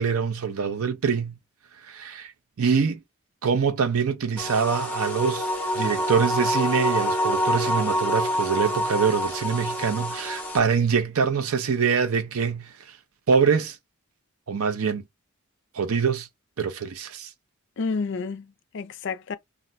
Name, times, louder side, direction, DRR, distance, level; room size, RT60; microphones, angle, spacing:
voice 1, 0.0-1.4 1.9-2.3 2.6-3.0 3.4-5.5 5.8-12.7 13.3-13.8 14.5-15.0 15.7-16.3 16.6-17.3, right 6 dB, 80° right, 0.5 m, -24 dB
sound 1, 4.4-10.6, equal, 10° left, 0.7 m, -26 dB
voice 2, 17.8-19.3, left 4 dB, 55° left, 0.4 m, -30 dB
2.5 x 2.1 x 3.8 m
head